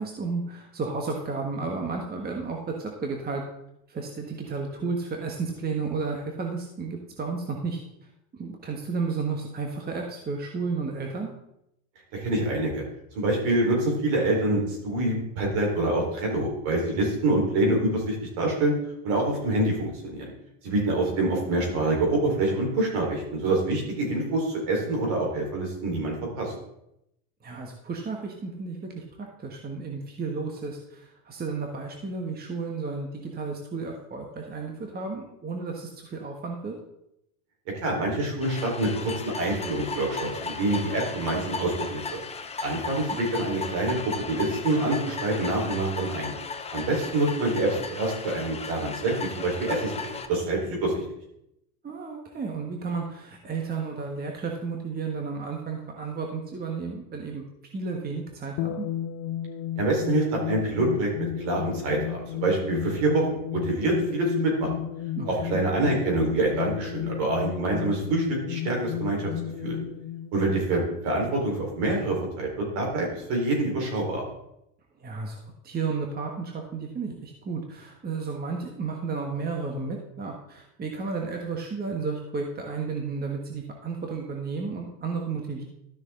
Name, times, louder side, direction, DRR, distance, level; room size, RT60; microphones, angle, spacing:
voice 1, 0.0-3.4 3.9-7.8 8.3-11.3 27.4-36.7 43.1-43.2 51.8-57.4 57.7-58.9 65.1-65.4 75.0-85.6, right 4 dB, 20° right, 2 dB, 1.3 m, -32 dB
voice 2, 12.1-12.8 13.1-18.7 19.0-20.3 20.6-26.5 37.8-42.2 42.6-43.9 44.3-46.3 46.7-51.0 59.8-61.1 61.4-64.7 65.2-69.3 69.6-69.8 70.3-74.2, right 2 dB, 60° right, -1 dB, 4.2 m, -26 dB
sound 1, 38.4-50.3, left 4 dB, 15° left, 0.7 m, -36 dB
sound 2, 58.6-71.4, left 11 dB, 55° left, 0.6 m, -34 dB
12.5 x 6.3 x 3.7 m, 0.80 s
supercardioid pair, 110°, 48 cm